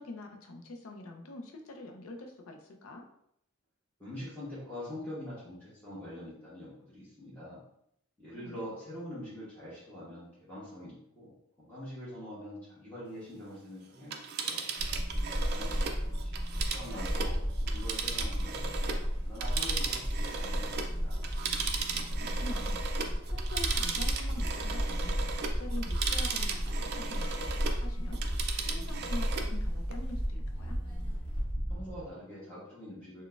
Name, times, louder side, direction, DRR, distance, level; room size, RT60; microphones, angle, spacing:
voice 1, 0.0-3.1 8.3-8.6 22.1-28.2 28.6-30.8, left 2 dB, 80° left, 3 dB, 0.5 m, -45 dB
voice 2, 4.0-7.6 8.2-14.7 15.4-21.2 31.7-33.2, left 1 dB, 10° left, -10 dB, 0.9 m, -44 dB
Telephone, 14.0-19.1 19.4-27.8 28.1-29.5 29.9-30.0, right 6 dB, 50° right, 0.3 m, -36 dB
sound 1, 14.8-32.1, equal, 25° left, 1.4 m, -33 dB
3.9 x 2.1 x 2.4 m, 0.74 s
head